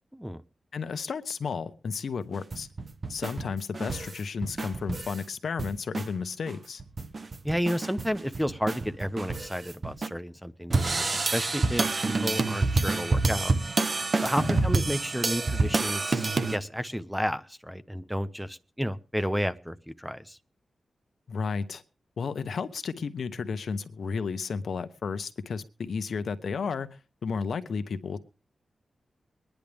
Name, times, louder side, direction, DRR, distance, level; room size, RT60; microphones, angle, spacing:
voice 1, 0.7-2.7 3.1-6.8 14.4-14.7 21.3-21.8 22.2-28.2, left 5 dB, 75° left, 1.0 m, -33 dB
sound 1, 2.3-5.2 5.6-6.1 6.5-6.6 6.8-10.1 10.7-16.6, right 3 dB, 40° right, 1.0 m, -28 dB
voice 2, 7.4-11.9 12.2-13.5 14.2-20.4, equal, ahead, 0.7 m, -31 dB
23.5 x 10.5 x 3.5 m
wide cardioid pair, 130°, 0 cm